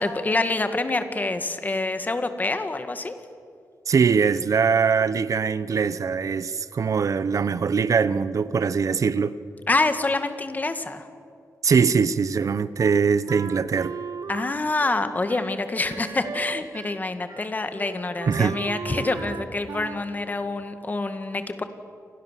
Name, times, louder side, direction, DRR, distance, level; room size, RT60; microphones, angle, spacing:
voice 1, 0.0-3.2 9.7-11.1 11.7-11.8 14.3-21.6, left 2 dB, 25° left, 1.9 m, -26 dB
voice 2, 3.9-9.4 11.6-13.9 18.3-18.6, right 6 dB, 60° right, 0.9 m, -22 dB
Wind instrument woodwind instrument, 12.8-17.0 17.3-17.5 17.7-20.1, right 5 dB, 75° right, 1.3 m, -37 dB
29.0 x 27.0 x 7.6 m
wide cardioid pair, 145°, 6 cm